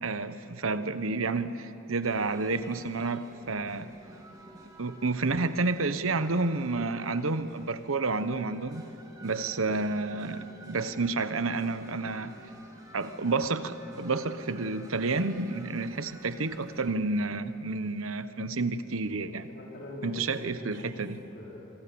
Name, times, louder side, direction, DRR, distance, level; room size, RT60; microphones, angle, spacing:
voice 1, 0.0-3.9 4.8-8.8 9.2-12.4 12.9-19.5 20.0-21.2, right 3 dB, 80° right, 11 dB, 1.1 m, -30 dB
sound 1, 2.0-16.9, right 1 dB, 20° right, 2.7 m, -51 dB
voice 2, 19.3-21.6, left 1 dB, 55° left, -4 dB, 4.4 m, -44 dB
27.0 x 25.5 x 7.1 m, 2.9 s
head